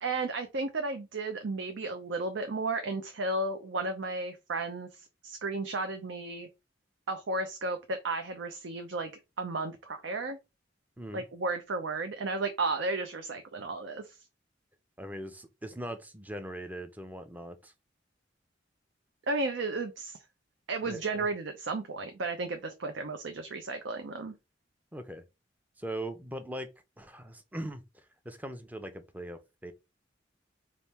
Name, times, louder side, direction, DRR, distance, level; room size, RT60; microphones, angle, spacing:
voice 1, 0.0-6.5 7.1-9.1 9.4-10.4 11.1-14.2 19.3-20.2 20.7-24.3, right 3 dB, 90° right, 0.6 m, -33 dB
voice 2, 11.0-11.3 15.0-17.7 20.8-21.3 24.9-25.2 25.8-26.7 27.0-27.8 28.2-29.7, right 1 dB, 10° right, 0.5 m, -40 dB
3.5 x 2.5 x 4.2 m
head